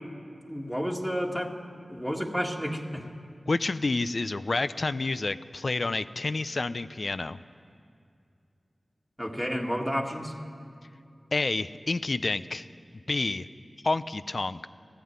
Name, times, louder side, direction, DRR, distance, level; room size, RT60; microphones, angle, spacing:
voice 1, 0.4-1.6 1.9-3.0 9.2-10.3, equal, 5° left, 0 dB, 2.0 m, -31 dB
voice 2, 3.5-7.4 11.3-12.7 13.1-13.5 13.8-14.7, left 3 dB, 60° left, 13 dB, 0.6 m, -29 dB
18.0 x 15.0 x 9.6 m, 2.4 s
wide cardioid pair, 80°, 0 cm